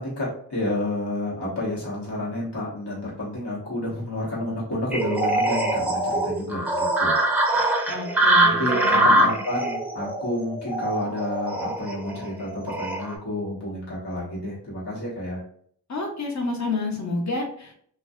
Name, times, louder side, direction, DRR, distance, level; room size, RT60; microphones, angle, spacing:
voice 1, 0.0-7.2 7.5-7.7 8.4-15.4, left 1 dB, 85° left, -6 dB, 1.1 m, -30 dB
sound 1, 4.9-13.1, right 1 dB, 5° right, 0.4 m, -23 dB
voice 2, 7.9-9.3 15.9-17.7, left 3 dB, 45° left, 1 dB, 0.7 m, -29 dB
2.5 x 2.3 x 2.3 m, 0.62 s
wide cardioid pair, 75°, 40 cm